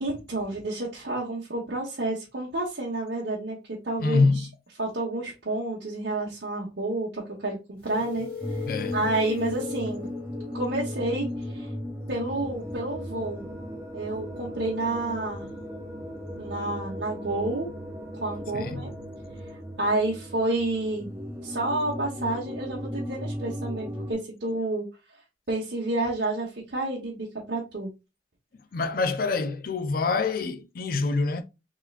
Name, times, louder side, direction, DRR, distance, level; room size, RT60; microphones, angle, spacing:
voice 1, 0.0-4.5 4.8-8.3 8.9-10.1 10.5-11.3 11.5-11.7 12.1-13.5 13.9-15.5 16.4-17.7 18.1-18.9 19.8-24.8 25.5-27.9, right 2 dB, 70° right, 1.1 m, -30 dB
voice 2, 4.0-4.4 8.7-9.0 18.5-18.8 28.7-31.4, left 3 dB, 50° left, 0.5 m, -25 dB
sound 1, 7.8-9.9, left 7 dB, 5° left, 1.8 m, -36 dB
sound 2, 8.4-24.1, left 1 dB, 15° right, 0.5 m, -36 dB
3.7 x 3.0 x 2.4 m
head